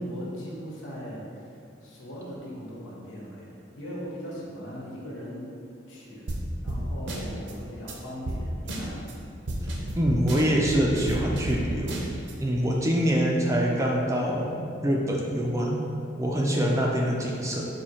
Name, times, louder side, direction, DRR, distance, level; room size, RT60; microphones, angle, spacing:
voice 1, 0.0-1.6 1.8-5.5 5.9-6.2 6.6-8.9, equal, 75° left, -6 dB, 1.1 m, -39 dB
sound 1, 6.3-6.4 6.7-6.8 7.1-7.5 7.9-8.0 8.3-8.4 8.7-9.1 9.5-11.6 11.9-12.3, right 1 dB, 60° right, 0.6 m, -32 dB
voice 2, 10.0-12.0 12.4-15.8 16.2-17.7, equal, 15° right, -2 dB, 0.3 m, -25 dB
4.2 x 2.7 x 4.2 m, 2.5 s
head